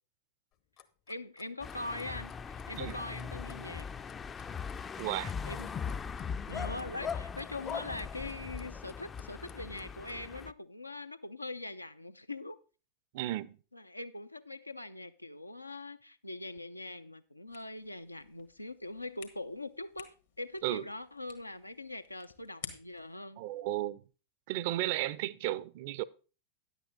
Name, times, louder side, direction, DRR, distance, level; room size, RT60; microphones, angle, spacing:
Clock, 0.5-10.2, left 10 dB, 40° left, 0.7 m, -59 dB
voice 1, 1.1-3.9 5.4-5.7 6.5-12.6 13.7-23.4, left 2 dB, 85° left, 0.5 m, -42 dB
sound 1, 1.6-10.5, left 6 dB, 20° left, 0.4 m, -40 dB
voice 2, 5.0-5.3 13.1-13.6 20.6-20.8 23.4-24.0 24.5-26.0, right 15 dB, 50° right, 0.4 m, -34 dB
sound 2, 17.5-23.2, left 8 dB, 65° left, 1.4 m, -52 dB
10.0 x 8.2 x 3.9 m
figure-of-eight pair, 90°, 0 cm